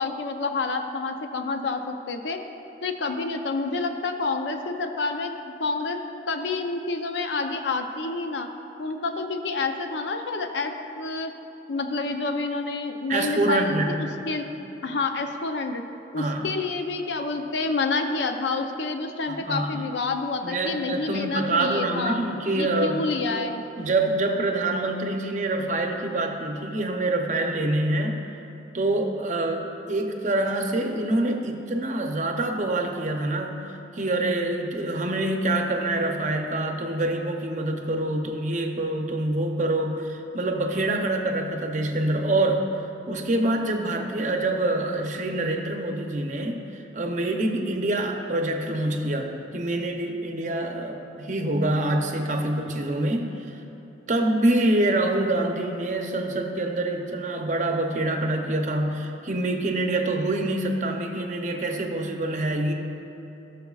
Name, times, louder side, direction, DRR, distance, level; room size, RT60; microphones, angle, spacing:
voice 1, 0.0-2.4 2.8-5.3 5.6-6.0 6.3-8.5 8.8-11.3 11.7-14.5 14.8-15.8 16.1-22.2 22.5-23.6, left 3 dB, 70° left, 6 dB, 0.6 m, -28 dB
voice 2, 13.1-14.0 16.1-16.5 19.3-19.9 20.4-23.0 23.8-28.2 28.7-53.6 54.1-62.7, right 2 dB, 40° right, 3 dB, 0.7 m, -26 dB
16.5 x 6.5 x 2.4 m, 3.0 s
head